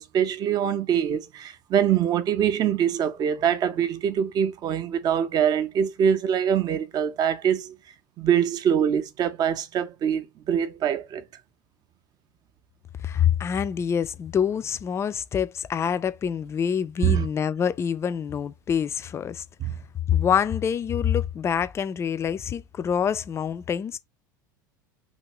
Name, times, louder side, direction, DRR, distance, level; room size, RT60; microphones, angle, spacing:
voice 1, 0.0-7.8 8.2-11.2 17.0-17.3 19.6-19.7, right 9 dB, 40° right, 0.5 m, -24 dB
voice 2, 13.0-19.4 20.1-24.0, left 8 dB, 25° left, 0.3 m, -26 dB
2.8 x 2.5 x 3.0 m
hypercardioid pair, 80°, 11 cm